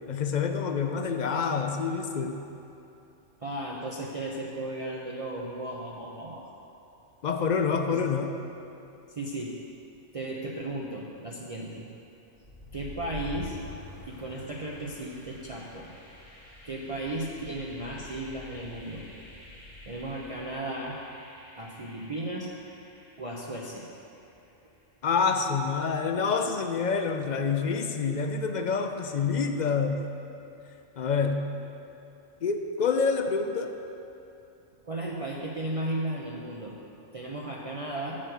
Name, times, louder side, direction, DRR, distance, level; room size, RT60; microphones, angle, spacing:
voice 1, 0.0-2.4 7.2-8.4 25.0-30.0 31.0-31.4 32.4-33.7, left 5 dB, 55° left, 6 dB, 0.5 m, -27 dB
voice 2, 3.4-6.4 7.9-8.0 9.1-9.5 10.1-11.9 12.7-13.6 14.1-15.9 16.6-19.1 19.9-21.0 21.6-22.5 23.2-23.9 34.8-36.7 37.1-38.2, right 1 dB, 35° right, -3 dB, 0.7 m, -35 dB
sound 1, 12.3-24.2, left 2 dB, 25° left, 1.4 m, -47 dB
7.6 x 6.4 x 7.8 m, 2.8 s
omnidirectional pair, 1.3 m